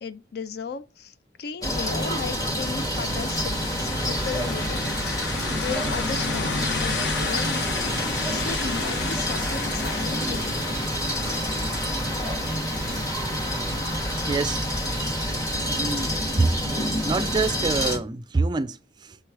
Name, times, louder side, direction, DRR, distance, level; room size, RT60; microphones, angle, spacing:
voice 1, 0.0-5.2 5.5-7.7 8.2-10.6, left 6 dB, 60° left, 0.4 m, -35 dB
sound 1, 1.6-18.0, equal, 20° left, 1.1 m, -28 dB
sound 2, 3.1-16.5, left 4 dB, 85° left, 0.8 m, -34 dB
voice 2, 14.3-14.6 15.7-16.5 17.0-19.2, right 3 dB, 25° right, 0.4 m, -26 dB
6.8 x 3.1 x 4.6 m
head